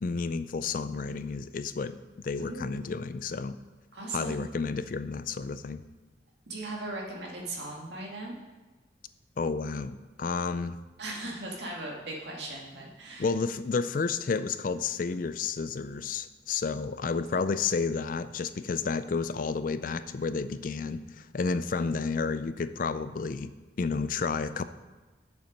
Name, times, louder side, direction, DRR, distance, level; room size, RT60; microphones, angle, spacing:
voice 1, 0.0-3.6 4.1-5.8 9.4-10.8 13.2-24.6, left 4 dB, 45° left, 13 dB, 0.4 m, -31 dB
voice 2, 2.4-2.8 3.9-4.4 6.5-8.4 11.0-13.3, right 2 dB, 70° right, -1 dB, 2.1 m, -38 dB
8.0 x 7.2 x 5.2 m, 1.3 s
head